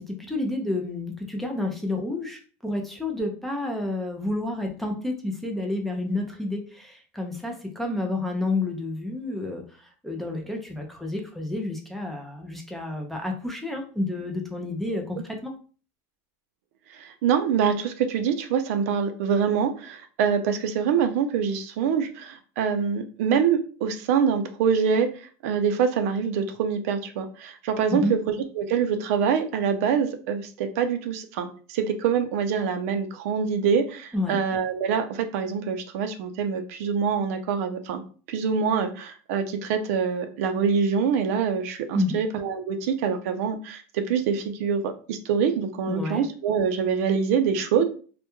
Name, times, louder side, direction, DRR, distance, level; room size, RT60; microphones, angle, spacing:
voice 1, 0.0-15.5 27.9-28.1 34.1-34.4 41.9-42.2 45.9-46.2, left 2 dB, ahead, 2 dB, 0.3 m, -30 dB
voice 2, 16.9-38.0 38.3-47.8, right 6 dB, 75° right, 8 dB, 0.4 m, -25 dB
2.2 x 2.1 x 2.9 m, 0.40 s
cardioid pair, 165°, 8 cm